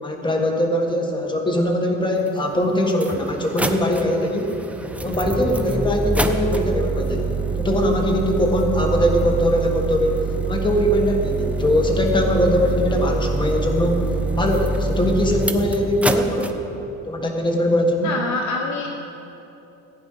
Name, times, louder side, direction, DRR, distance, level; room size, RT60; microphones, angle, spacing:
voice 1, 0.0-4.6 5.0-16.5 17.1-18.1, equal, 15° left, 2 dB, 1.4 m, -21 dB
sound 1, 2.3-2.4 2.9-16.5, right 3 dB, 5° right, 0.5 m, -25 dB
voice 2, 18.0-19.0, left 3 dB, 55° left, 1 dB, 1.3 m, -26 dB
15.5 x 9.3 x 5.6 m, 2.9 s
cardioid pair, 140°, 34 cm